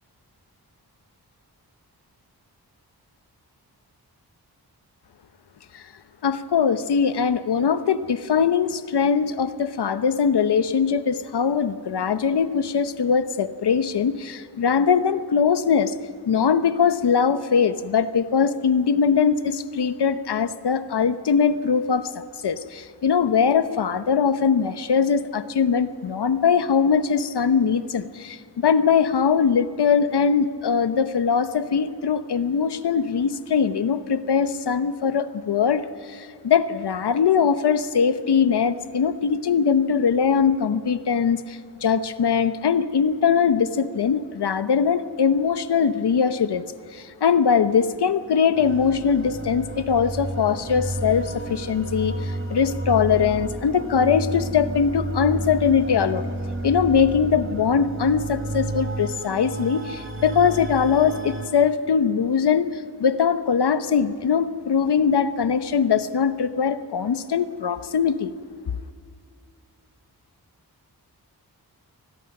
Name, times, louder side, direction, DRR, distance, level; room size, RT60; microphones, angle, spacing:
voice 1, 6.2-15.9 16.3-22.1 22.4-46.6 46.9-56.3 56.6-68.3, left 6 dB, 80° left, 12 dB, 1.0 m, -21 dB
sound 1, 48.5-61.5, right 2 dB, 30° right, 3.6 m, -31 dB
28.5 x 20.5 x 6.0 m, 2.2 s
cardioid pair, 55°, 39 cm